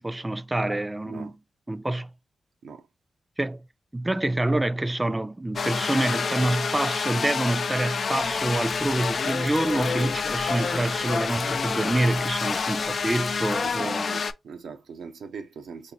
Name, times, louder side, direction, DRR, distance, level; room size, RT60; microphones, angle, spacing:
voice 1, 0.0-1.4 1.7-2.1 3.4-3.6 3.9-14.1, right 1 dB, 20° right, 0.4 m, -27 dB
voice 2, 1.0-1.4 2.6-2.9 13.6-15.9, right 5 dB, 85° right, 0.5 m, -41 dB
sound 1, 5.6-14.3, left 5 dB, 65° left, 0.3 m, -28 dB
sound 2, 8.2-13.8, left 1 dB, 25° left, 0.8 m, -45 dB
3.4 x 2.5 x 2.9 m
supercardioid pair, 45°, 0 cm